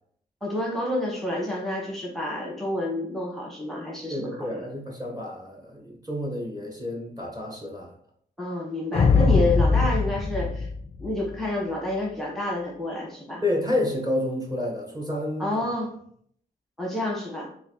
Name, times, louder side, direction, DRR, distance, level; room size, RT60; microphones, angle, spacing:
voice 1, 0.4-4.6 8.4-10.7 11.0-13.4 15.4-15.9 16.8-17.5, left 1 dB, ahead, -3 dB, 0.9 m, -29 dB
voice 2, 4.1-7.9 13.4-15.6, left 1 dB, 20° right, -1 dB, 1.1 m, -29 dB
sound 1, 8.9-11.4, left 4 dB, 35° left, 0.3 m, -21 dB
4.0 x 2.5 x 2.9 m, 0.64 s
cardioid pair, 85°, 17 cm